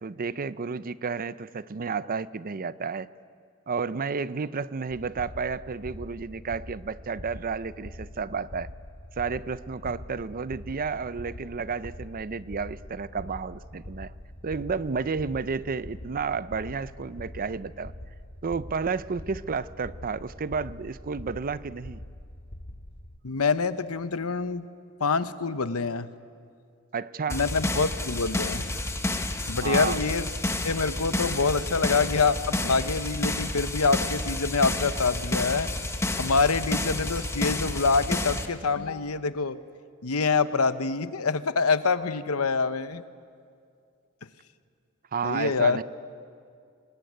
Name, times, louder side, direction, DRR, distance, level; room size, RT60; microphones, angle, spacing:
voice 1, 0.0-3.1 3.7-8.7 9.2-14.1 14.4-17.9 18.4-22.0 26.9-27.4 29.6-30.0 45.1-45.8, right 5 dB, 40° right, 16 dB, 0.5 m, -31 dB
sound 1, 4.9-23.2, left 1 dB, 50° left, 2.0 m, -44 dB
voice 2, 23.2-24.7 25.0-26.1 27.3-28.7 29.5-30.3 30.6-35.7 36.2-39.6 40.0-43.0 45.2-45.8, left 4 dB, 80° left, 12 dB, 0.9 m, -26 dB
sound 2, 27.3-38.5, left 2 dB, 15° left, 1.3 m, -30 dB
25.0 x 20.5 x 9.5 m, 2.3 s
head